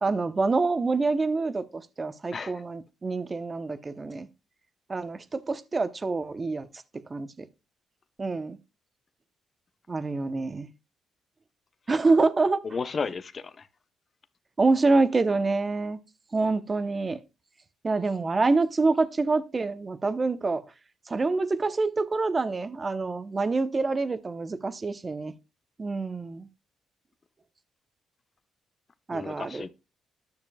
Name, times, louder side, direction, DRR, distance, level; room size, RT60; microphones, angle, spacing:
voice 1, 0.0-4.3 4.9-6.7 6.9-7.5 8.2-8.6 9.9-10.7 11.9-12.6 14.6-16.0 16.3-17.2 17.8-20.6 21.1-25.4 25.8-26.5 29.1-29.7, right 3 dB, 30° right, 0.8 m, -26 dB
voice 2, 2.3-2.6 12.6-13.7 29.1-29.7, left 5 dB, 40° left, 0.8 m, -33 dB
12.5 x 6.6 x 2.3 m
cardioid pair, 90°, 0 cm